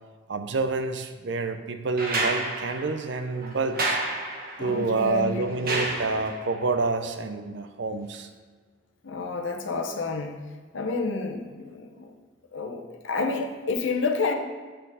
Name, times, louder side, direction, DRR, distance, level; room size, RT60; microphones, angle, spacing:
voice 1, 0.3-4.0 4.6-8.3, right 4 dB, 65° right, 8 dB, 0.6 m, -28 dB
sound 1, 2.0-6.6 8.1-8.2, right 2 dB, 50° right, 1.1 m, -31 dB
voice 2, 4.6-5.8 9.0-10.4 10.7-12.1 12.5-14.3, left 4 dB, 80° left, 3 dB, 0.9 m, -29 dB
7.6 x 4.6 x 4.9 m, 1.5 s
head